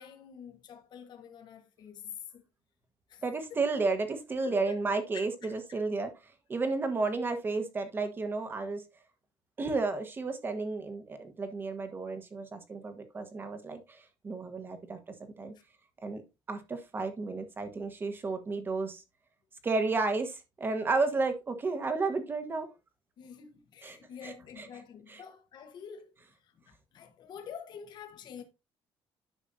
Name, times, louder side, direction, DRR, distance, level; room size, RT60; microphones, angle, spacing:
voice 1, 0.0-2.4 3.1-3.2 3.5-3.6 4.4-4.8 5.1-5.8 15.5-15.6 23.2-28.4, left 8 dB, 50° left, 1.3 m, -47 dB
voice 2, 3.2-6.1 6.5-8.8 9.6-15.0 15.4-15.5 16.0-16.2 16.5-19.0 19.6-22.7 23.8-24.0 24.2-24.7 25.1-25.2, right 3 dB, 20° right, 1.2 m, -32 dB
10.0 x 6.3 x 2.7 m
cardioid pair, 160°, 10 cm